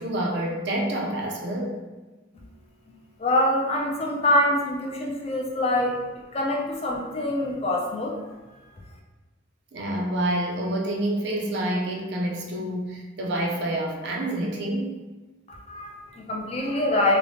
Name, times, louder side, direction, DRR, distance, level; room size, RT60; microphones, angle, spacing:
voice 1, 0.0-1.8 9.7-15.1 16.1-16.2, right 1 dB, 60° right, 0 dB, 0.4 m, -28 dB
voice 2, 2.9-6.0 6.3-8.1 15.5-17.2, left 1 dB, 30° left, -1 dB, 0.4 m, -25 dB
3.1 x 2.1 x 2.7 m, 1.2 s
head